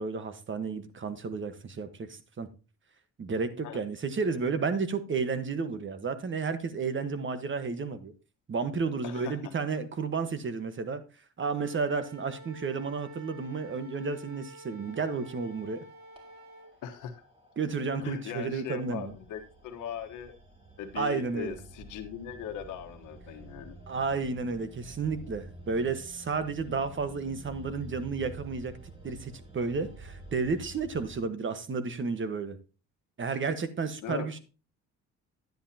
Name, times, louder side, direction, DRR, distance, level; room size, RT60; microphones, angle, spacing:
voice 1, 0.0-2.5 3.2-8.1 8.5-11.0 11.4-15.8 17.6-19.1 20.9-21.5 23.9-28.7 29.0-32.6 33.2-34.4, right 4 dB, 40° right, 1.4 m, -32 dB
voice 2, 9.0-9.5 16.8-17.2 18.0-20.3 20.8-23.8 34.0-34.4, left 8 dB, 85° left, 1.4 m, -39 dB
Wind instrument woodwind instrument, 11.5-16.7, right 1 dB, 70° right, 3.6 m, -49 dB
sound 1, 14.9-31.2, right 2 dB, 20° right, 3.4 m, -50 dB
10.5 x 10.0 x 2.9 m
cardioid pair, 90°, 30 cm